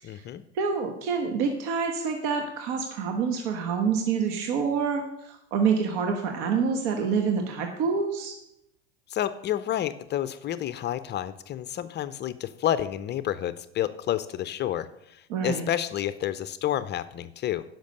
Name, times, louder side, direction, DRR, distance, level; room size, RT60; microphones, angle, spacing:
voice 1, 0.0-0.4 9.1-17.6, left 11 dB, 30° left, 14 dB, 0.5 m, -30 dB
voice 2, 0.5-8.3 15.3-15.6, right 5 dB, 60° right, 4 dB, 1.5 m, -27 dB
10.5 x 5.9 x 6.7 m, 0.81 s
hypercardioid pair, 95°, 35 cm